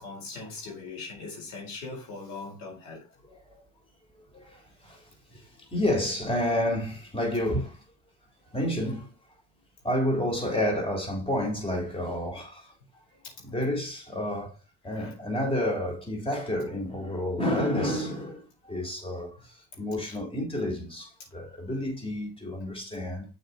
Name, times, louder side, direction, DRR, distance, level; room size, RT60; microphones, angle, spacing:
voice 1, 0.0-3.1 5.3-5.4 13.2-13.6 14.8-15.2 19.7-20.2, left 3 dB, 80° left, 4.4 m, -41 dB
voice 2, 3.3-3.6 4.3-5.0 5.3-5.4 5.7-7.8 8.5-9.1 9.8-12.7 13.4-14.5 14.8-23.3, left 1 dB, 15° left, 3.8 m, -30 dB
6.9 x 5.8 x 4.3 m
supercardioid pair, 85°, 37 cm